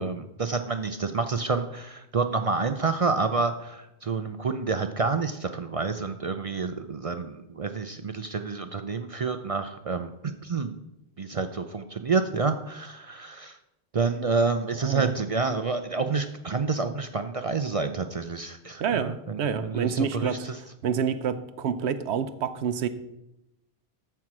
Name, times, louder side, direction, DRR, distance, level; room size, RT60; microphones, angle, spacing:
voice 1, 0.0-10.7 11.2-13.6 13.9-20.6, right 4 dB, 45° right, 8 dB, 0.4 m, -28 dB
voice 2, 18.8-20.5 20.8-22.9, right 7 dB, 85° right, 11 dB, 0.9 m, -28 dB
13.5 x 4.6 x 6.0 m, 0.89 s
omnidirectional pair, 1.1 m